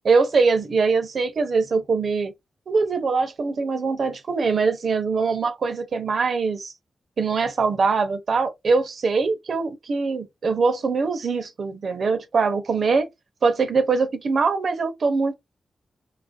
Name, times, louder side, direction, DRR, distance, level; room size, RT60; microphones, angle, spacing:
voice 1, 0.0-2.3 2.7-6.7 7.2-13.1 13.4-15.3, right 4 dB, 65° right, 0.6 m, -22 dB
2.9 x 2.4 x 2.5 m
cardioid pair, 80°, 0 cm